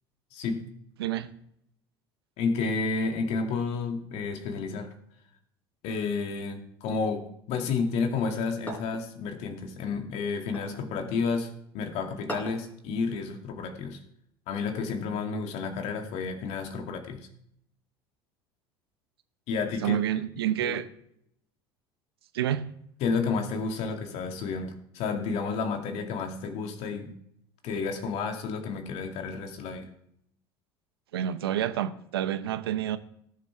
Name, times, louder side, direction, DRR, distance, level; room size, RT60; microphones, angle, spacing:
voice 1, 0.3-0.7 2.4-4.9 5.8-14.0 14.5-17.3 19.5-20.0 20.6-20.8 23.0-27.2 27.6-29.9, left 4 dB, 60° left, 2.3 m, -31 dB
sound 1, 8.7-9.1 10.5-10.8 12.3-12.7, right 1 dB, 15° left, 5.0 m, -37 dB
voice 2, 19.8-20.9 22.3-22.6 31.1-33.0, right 11 dB, 85° right, 0.8 m, -28 dB
18.5 x 7.7 x 3.5 m
hypercardioid pair, 75°, 13 cm